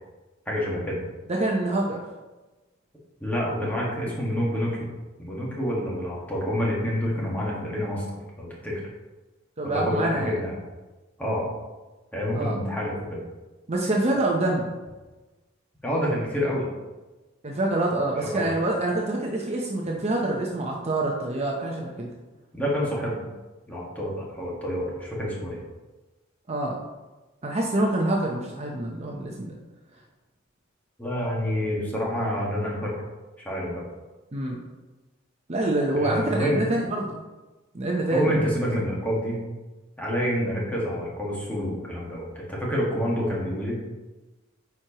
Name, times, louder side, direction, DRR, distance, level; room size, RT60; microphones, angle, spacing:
voice 1, 0.5-1.0 3.2-4.9 5.2-8.0 8.4-8.7 9.6-10.5 11.2-11.4 12.1-13.2 15.8-16.7 18.2-18.5 22.5-23.2 23.7-25.6 31.0-32.9 33.4-33.8 36.0-36.6 38.1-39.4 40.0-43.8, equal, 10° left, -5 dB, 1.7 m, -27 dB
voice 2, 1.3-2.0 9.6-10.3 12.3-12.6 13.7-14.7 17.4-22.1 26.5-26.8 27.4-29.6 34.3-34.6 35.5-37.2 37.7-38.4, right 2 dB, 35° right, -1 dB, 0.7 m, -26 dB
9.4 x 4.6 x 2.9 m, 1.2 s
head